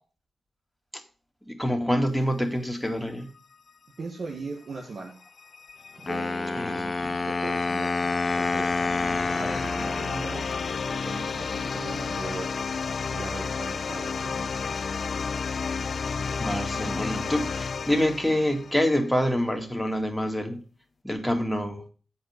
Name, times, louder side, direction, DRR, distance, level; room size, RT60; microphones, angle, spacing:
voice 1, 1.5-3.3 6.6-7.1 16.4-20.6 21.0-21.8, equal, 5° left, 2.3 m, -26 dB
voice 2, 4.0-5.2 6.0-8.1 8.4-8.8 9.4-10.5 10.8-12.5 13.1-14.5, right 3 dB, 65° right, 1.8 m, -39 dB
sound 1, 5.2-19.0, left 5 dB, 60° left, 0.3 m, -32 dB
Wind instrument woodwind instrument, 6.1-11.0, left 3 dB, 40° left, 0.9 m, -28 dB
8.0 x 5.4 x 6.7 m
supercardioid pair, 40°, 0 cm